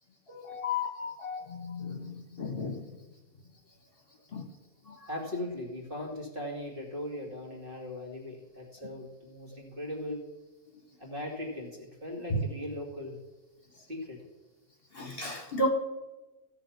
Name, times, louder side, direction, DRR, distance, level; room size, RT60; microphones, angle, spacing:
voice 1, 0.3-2.8 4.3-4.5 4.9-5.0 12.3-12.4 14.9-15.7, left 2 dB, 45° left, 4 dB, 1.4 m, -33 dB
voice 2, 5.1-10.2 11.0-13.2 13.7-14.3, left 1 dB, 35° right, -3 dB, 3.0 m, -39 dB
16.5 x 7.1 x 5.9 m, 1.1 s
omnidirectional pair, 1.5 m